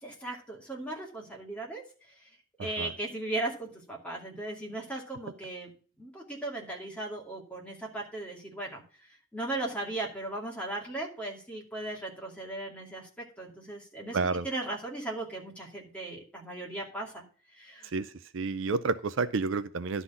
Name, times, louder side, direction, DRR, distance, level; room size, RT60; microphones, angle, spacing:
voice 1, 0.0-1.8 2.1-2.3 2.6-5.7 6.0-8.8 9.1-14.2 14.4-17.2 17.5-17.9, right 2 dB, 5° left, -2 dB, 2.4 m, -37 dB
voice 2, 2.6-2.9 14.1-14.5 17.9-20.0, right 4 dB, 70° right, 13 dB, 0.5 m, -30 dB
11.5 x 4.0 x 7.1 m, 0.40 s
head